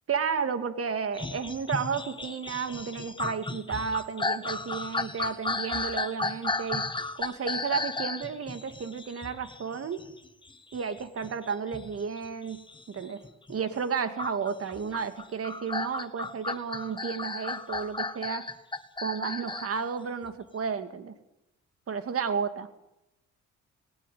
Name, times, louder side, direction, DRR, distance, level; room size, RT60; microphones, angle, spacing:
voice 1, 0.1-6.8 7.2-10.0 10.7-12.6 12.9-13.2 13.5-18.4 19.0-21.2 21.9-22.7, right 6 dB, 50° right, 10 dB, 2.5 m, -32 dB
sound 1, 1.1-13.6 14.2-19.7 20.3-20.4, left 3 dB, 15° left, 1.6 m, -34 dB
20.5 x 18.5 x 9.4 m, 0.86 s
cardioid pair, 90°, 30 cm